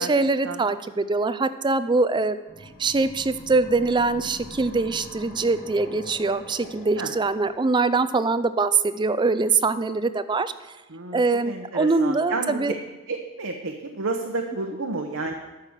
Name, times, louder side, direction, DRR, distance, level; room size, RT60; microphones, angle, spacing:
voice 1, 0.0-2.4 2.8-10.5 11.1-12.8, right 3 dB, 20° right, 13 dB, 0.4 m, -23 dB
sound 1, 2.5-7.6, left 1 dB, 30° left, 1.8 m, -43 dB
voice 2, 10.9-12.6 13.1-15.3, right 3 dB, 60° right, 3 dB, 0.9 m, -31 dB
12.5 x 5.7 x 7.2 m, 1.1 s
head